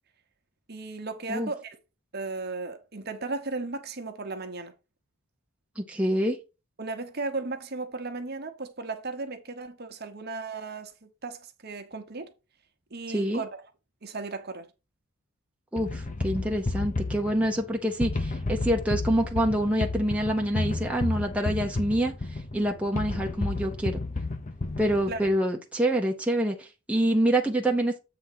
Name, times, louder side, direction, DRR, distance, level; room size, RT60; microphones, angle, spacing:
voice 1, 0.7-1.8 2.1-4.7 6.8-12.3 12.9-13.6 14.0-14.7 25.1-25.2, right 3 dB, 45° right, 1.1 m, -35 dB
voice 2, 5.8-6.4 13.1-13.4 15.7-24.0 24.8-28.0, right 1 dB, 5° right, 0.9 m, -26 dB
sound 1, 15.8-25.3, left 2 dB, 35° left, 0.7 m, -32 dB
7.9 x 3.6 x 5.8 m
head